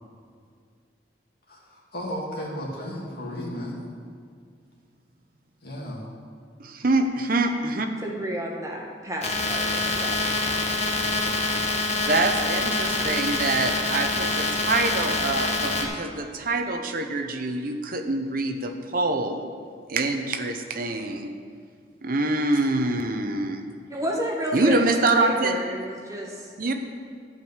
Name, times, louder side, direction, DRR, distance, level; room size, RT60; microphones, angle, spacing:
voice 1, 1.5-3.7 5.6-6.1, equal, 60° left, -3 dB, 2.4 m, -34 dB
voice 2, 6.6-7.9 12.1-19.5 19.9-21.3 22.0-23.6 24.5-25.6 26.6-26.7, right 2 dB, 55° right, 6 dB, 0.8 m, -25 dB
voice 3, 8.0-10.3 23.9-24.8 25.1-26.7, equal, 20° right, -1 dB, 1.5 m, -31 dB
sound 1, 9.2-15.8, left 2 dB, 40° left, 1.4 m, -26 dB
12.0 x 5.2 x 8.1 m, 2.1 s
head